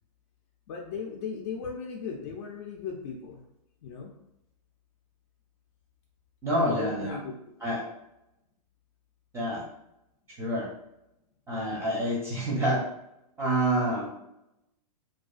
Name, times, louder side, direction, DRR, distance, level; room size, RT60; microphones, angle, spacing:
voice 1, 0.7-3.4 3.8-4.1 6.6-7.3, left 6 dB, 45° left, 0 dB, 0.4 m, -37 dB
voice 2, 6.4-7.2 7.6-7.8 9.3-9.6 10.4-10.7 11.5-12.8 13.4-14.1, right 1 dB, 15° right, -4 dB, 0.5 m, -27 dB
2.4 x 2.2 x 2.4 m, 0.87 s
hypercardioid pair, 125°, 20 cm